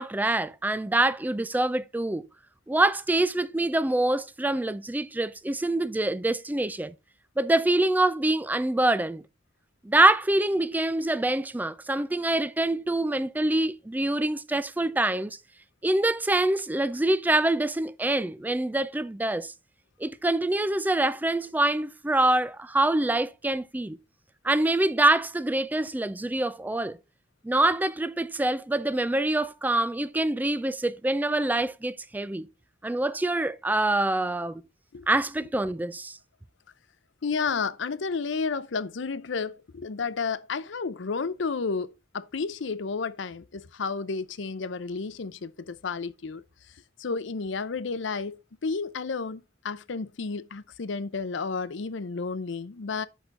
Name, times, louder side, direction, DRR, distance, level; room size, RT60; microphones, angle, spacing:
voice 1, 0.0-2.3 2.7-6.9 7.4-9.2 9.8-15.4 15.8-19.5 20.0-24.0 24.4-27.0 27.4-32.5 32.8-34.6 35.1-36.2, right 2 dB, 10° right, 0.4 m, -25 dB
voice 2, 37.2-46.4 47.0-53.1, left 4 dB, 70° left, 0.6 m, -32 dB
8.1 x 6.1 x 3.7 m
head